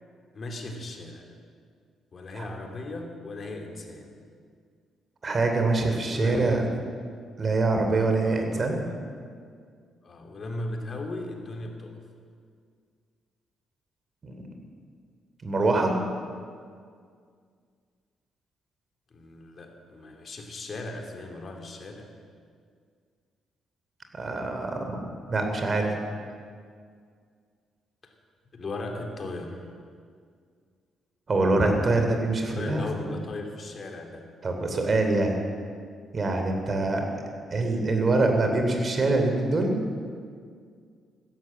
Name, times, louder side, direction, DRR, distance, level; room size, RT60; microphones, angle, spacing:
voice 1, 0.3-1.3 2.1-4.1 6.1-6.7 8.2-8.7 10.0-12.0 19.1-22.1 28.5-29.7 32.5-34.3 36.6-36.8, left 2 dB, 40° left, 3 dB, 2.8 m, -37 dB
voice 2, 5.2-6.6 7.4-8.8 14.2-14.4 15.4-15.9 24.1-25.0 25.3-25.9 31.3-32.8 34.4-35.4 36.1-37.1 37.5-39.8, right 2 dB, 40° right, 4 dB, 3.1 m, -24 dB
15.5 x 12.0 x 7.6 m, 2.1 s
cardioid pair, 90°, 0 cm